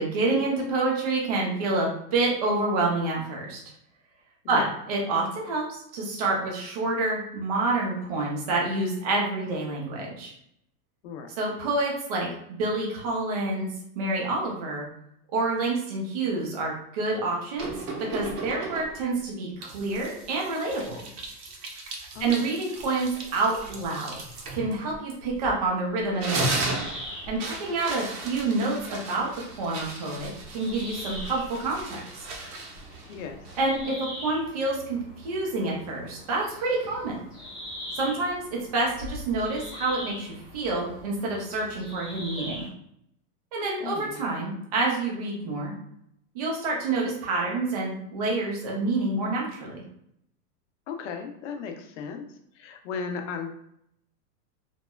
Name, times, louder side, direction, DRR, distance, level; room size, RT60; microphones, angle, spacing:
voice 1, 0.0-3.6 4.5-10.3 11.4-14.9 15.3-17.7 18.1-21.0 22.2-24.2 24.5-26.7 27.3-29.3 29.6-32.3 33.6-37.2 37.9-42.7 43.5-45.7 46.3-49.8, right 2 dB, 30° right, -2 dB, 0.3 m, -28 dB
sound 1, 17.6-19.1 19.6-25.7 26.0-33.8, right 2 dB, 65° right, 0.8 m, -36 dB
sound 2, 26.4-42.7, left 1 dB, ahead, 0.7 m, -42 dB
voice 2, 33.1-33.4 43.8-44.2 50.9-52.3 52.6-53.5, left 6 dB, 50° left, 5 dB, 0.5 m, -36 dB
2.9 x 2.2 x 2.2 m, 0.73 s
supercardioid pair, 150°, 48 cm